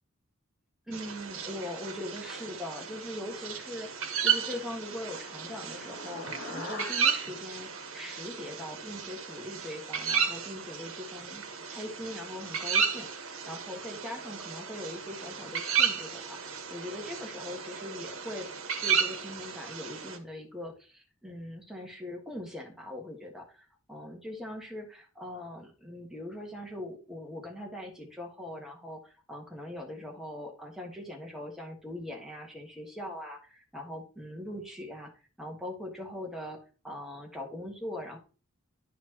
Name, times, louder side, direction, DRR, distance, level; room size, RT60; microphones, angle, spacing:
voice 1, 0.9-11.4 11.7-18.5 18.8-23.4 23.9-35.1 35.4-36.6 36.8-38.2, left 1 dB, ahead, 0 dB, 1.4 m, -41 dB
sound 1, 0.9-20.2, right 6 dB, 70° right, 1.2 m, -33 dB
sound 2, 4.5-8.8, left 2 dB, 60° left, 1.3 m, -45 dB
11.0 x 4.3 x 2.9 m, 0.36 s
head